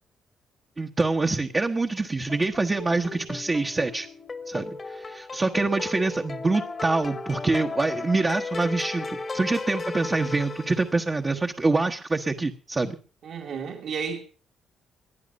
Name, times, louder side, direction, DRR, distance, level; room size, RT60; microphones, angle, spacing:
voice 1, 0.8-4.1 4.5-13.0, right 3 dB, 25° right, 1.2 m, -25 dB
sound 1, 2.3-11.2, left 3 dB, 35° left, 1.6 m, -35 dB
voice 2, 13.2-14.2, right 6 dB, 65° right, 2.5 m, -32 dB
20.0 x 11.0 x 5.3 m
cardioid pair, 90°, 0 cm